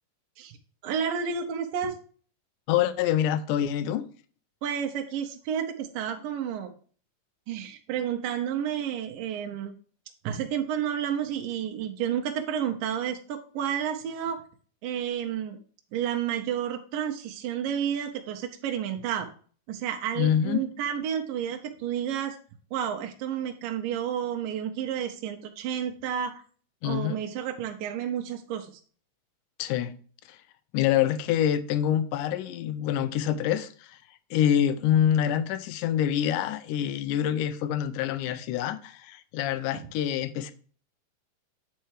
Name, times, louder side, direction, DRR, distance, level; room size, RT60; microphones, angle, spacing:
voice 1, 0.8-2.0 4.6-6.7 7.5-9.8 10.2-14.4 14.8-15.6 15.9-19.3 19.7-22.4 22.7-26.4 26.8-28.7, right 9 dB, 85° right, 2.5 m, -31 dB
voice 2, 2.7-4.0 20.2-20.6 26.8-27.2 29.6-29.9 30.3-30.4 30.7-34.0 34.3-40.5, left 10 dB, 80° left, 2.2 m, -26 dB
9.3 x 4.5 x 4.7 m
omnidirectional pair, 3.8 m